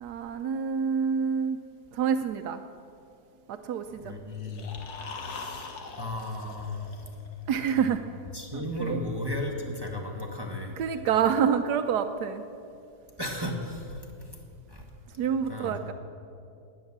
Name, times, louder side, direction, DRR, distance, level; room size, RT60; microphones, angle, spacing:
voice 1, 0.0-1.6 1.9-2.6 3.5-4.1 7.5-8.0 8.5-9.0 10.8-12.4 15.2-15.9, right 7 dB, 80° right, 8 dB, 1.2 m, -27 dB
voice 2, 4.0-4.7 5.2-5.7 5.9-6.9 7.7-7.9 8.3-10.8 13.2-14.0 14.7-14.9 15.5-15.9, left 1 dB, 15° right, 1 dB, 1.4 m, -35 dB
sound 1, 4.3-7.4, left 4 dB, 70° left, 1.8 m, -42 dB
19.5 x 9.7 x 7.3 m, 2.6 s
omnidirectional pair, 1.7 m